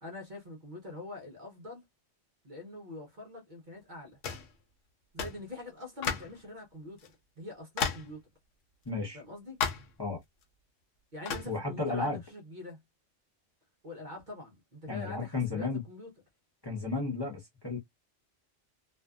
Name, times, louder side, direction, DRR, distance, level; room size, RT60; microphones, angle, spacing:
voice 1, 0.0-1.8 2.4-4.2 5.1-7.1 7.4-8.2 9.1-9.6 11.1-12.8 13.8-16.1, left 2 dB, 45° right, 0.8 m, -44 dB
sound 1, 4.2-4.5 5.2-5.4 6.0-6.4 7.0-7.1 7.8-8.1 9.6-10.0 11.3-11.5, left 6 dB, 85° left, 1.0 m, -33 dB
voice 2, 8.8-9.2 10.0-10.2 11.5-12.2 14.9-15.8 16.6-17.8, left 3 dB, 25° left, 0.7 m, -33 dB
2.5 x 2.4 x 2.3 m
omnidirectional pair, 1.3 m